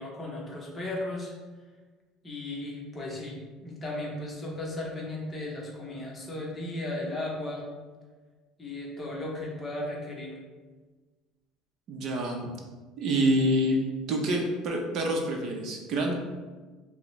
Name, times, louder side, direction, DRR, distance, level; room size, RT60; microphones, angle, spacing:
voice 1, 0.0-1.3 2.2-7.7 8.6-10.3, left 1 dB, 20° left, -2 dB, 0.8 m, -35 dB
voice 2, 11.9-12.5 13.0-13.8 14.1-16.1, right 1 dB, 45° right, 1 dB, 0.6 m, -27 dB
5.9 x 2.0 x 3.1 m, 1.3 s
cardioid pair, 155°, 0 cm